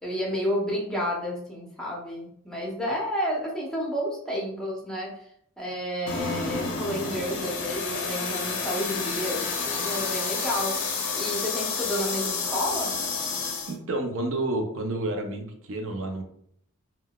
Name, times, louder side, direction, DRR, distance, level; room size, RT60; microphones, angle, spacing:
voice 1, 0.0-5.3 5.6-10.8 11.1-12.9, equal, 5° left, -3 dB, 0.7 m, -31 dB
sound 1, 6.1-13.8, left 4 dB, 55° left, 0.6 m, -30 dB
voice 2, 13.7-16.2, right 2 dB, 65° right, 4 dB, 0.5 m, -30 dB
3.7 x 2.2 x 2.3 m, 0.67 s
head